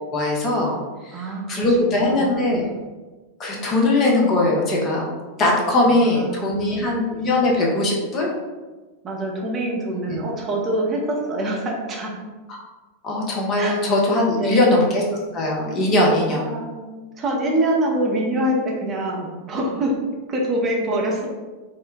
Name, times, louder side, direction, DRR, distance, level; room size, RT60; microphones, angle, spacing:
voice 1, 0.0-1.2 1.5-2.7 3.4-5.1 5.4-8.3 10.1-10.2 12.5-12.6 13.0-15.0 15.3-16.4, left 2 dB, 30° left, -2 dB, 0.7 m, -20 dB
voice 2, 1.1-2.8 5.8-6.8 9.0-12.1 13.6-13.8 14.3-14.8 16.3-20.0 20.3-21.3, right 1 dB, 25° right, -2 dB, 0.6 m, -25 dB
2.5 x 2.1 x 3.7 m, 1.3 s
figure-of-eight pair, 90°, 0 cm